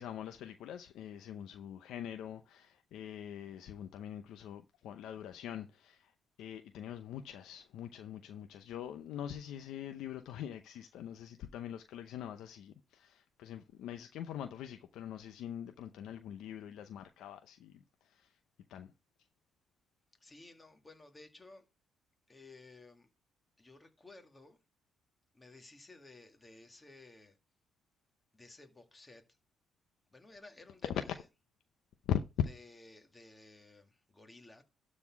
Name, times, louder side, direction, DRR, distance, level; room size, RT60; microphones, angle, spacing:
voice 1, 0.0-6.1 6.4-18.4 18.7-18.9 32.1-32.5, left 10 dB, 85° left, 0.7 m, -42 dB
voice 2, 20.2-21.7 22.3-23.1 23.6-24.6 25.3-27.4 28.3-29.3 30.1-31.0 32.5-34.6, left 2 dB, 20° left, 2.0 m, -56 dB
12.0 x 4.2 x 5.8 m
cardioid pair, 90°, 0 cm